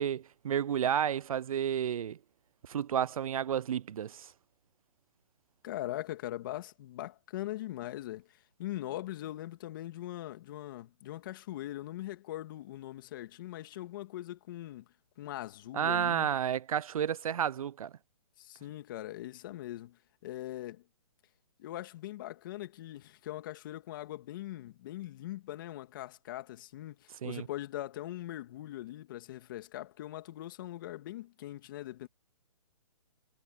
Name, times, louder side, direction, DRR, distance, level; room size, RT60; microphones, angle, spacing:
voice 1, 0.0-2.2 2.7-4.3 15.7-17.9 27.2-27.5, right 9 dB, 75° right, 0.4 m, -31 dB
voice 2, 5.6-14.9 15.2-16.3 18.4-20.8 21.6-32.1, left 14 dB, 35° left, 2.3 m, -41 dB
hypercardioid pair, 160°, 18 cm